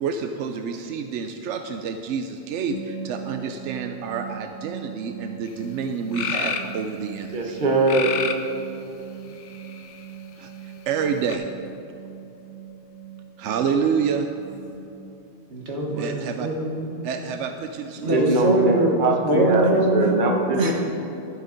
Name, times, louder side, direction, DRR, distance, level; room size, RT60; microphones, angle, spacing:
voice 1, 0.0-7.5 10.4-11.5 13.4-14.3 16.0-16.5 17.0-18.2, right 6 dB, 90° right, 6 dB, 0.9 m, -28 dB
sound 1, 2.7-14.8 16.6-16.8 17.1-17.3 17.6-17.8 18.1-18.4, right 7 dB, 45° left, 1.6 m, -40 dB
sound 2, 5.5-5.6 6.1-6.7 7.9-8.5 9.3-10.0 11.3-11.4, left 6 dB, 85° left, 1.1 m, -28 dB
voice 2, 7.3-8.1 18.0-20.7, right 3 dB, 45° right, 1 dB, 1.2 m, -22 dB
voice 3, 15.5-17.1 18.0-19.0 19.2-20.7, right 1 dB, 70° right, -1 dB, 1.9 m, -23 dB
12.5 x 7.6 x 5.1 m, 2.9 s
omnidirectional pair, 1.2 m